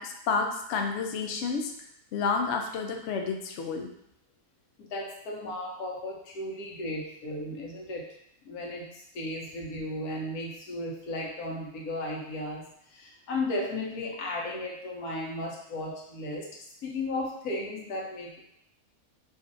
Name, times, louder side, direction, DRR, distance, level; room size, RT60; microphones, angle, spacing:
voice 1, 0.0-1.7 2.1-3.9, left 5 dB, 65° left, 3 dB, 0.7 m, -30 dB
voice 2, 4.8-8.1 8.5-18.4, left 2 dB, 90° left, -2 dB, 1.3 m, -35 dB
4.9 x 2.5 x 2.6 m, 0.76 s
omnidirectional pair, 1.5 m